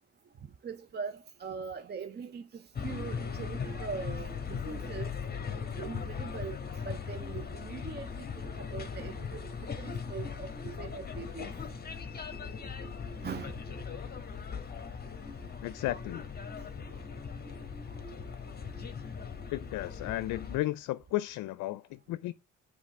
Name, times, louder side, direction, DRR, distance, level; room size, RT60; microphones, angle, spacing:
voice 1, 0.6-5.1 5.7-6.6 6.8-9.5 9.8-11.5 13.2-13.6 16.6-16.7, right 5 dB, 35° right, 0.6 m, -41 dB
sound 1, 2.7-20.6, left 6 dB, 30° left, 1.3 m, -39 dB
voice 2, 15.6-16.3 19.5-22.3, left 16 dB, 85° left, 0.5 m, -34 dB
7.4 x 3.7 x 4.5 m
cardioid pair, 90°, 30 cm